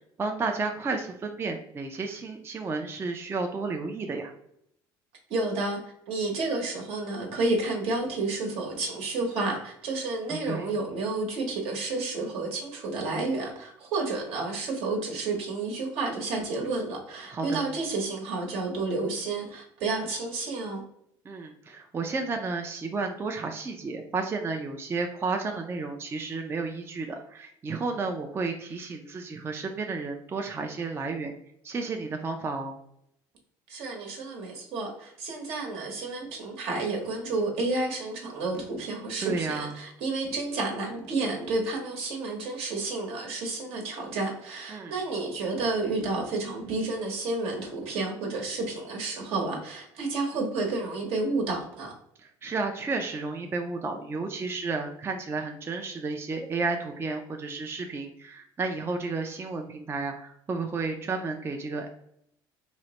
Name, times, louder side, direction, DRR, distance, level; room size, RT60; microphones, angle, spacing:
voice 1, 0.2-4.3 10.3-10.7 17.3-17.7 21.3-31.3 31.6-32.8 39.2-39.7 44.7-44.9 52.2-61.9, right 3 dB, 25° right, 4 dB, 0.3 m, -32 dB
voice 2, 5.3-5.8 6.1-20.8 33.7-51.9, right 3 dB, 70° right, 0 dB, 0.9 m, -30 dB
3.1 x 2.0 x 2.8 m, 0.74 s
supercardioid pair, 90°, 10 cm